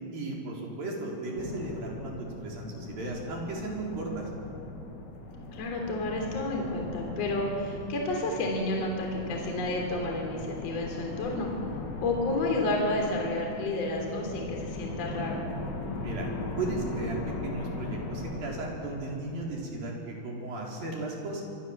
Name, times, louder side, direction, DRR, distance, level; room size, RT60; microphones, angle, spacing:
voice 1, 0.1-4.3 16.0-16.3 16.6-21.4, right 2 dB, 50° right, -1 dB, 5.6 m, -35 dB
sound 1, 1.4-19.8, left 2 dB, 80° left, 5.1 m, -39 dB
voice 2, 5.5-11.5 12.0-15.4, left 2 dB, 35° left, 1 dB, 3.9 m, -30 dB
26.5 x 24.0 x 7.4 m, 2.6 s
omnidirectional pair, 5.6 m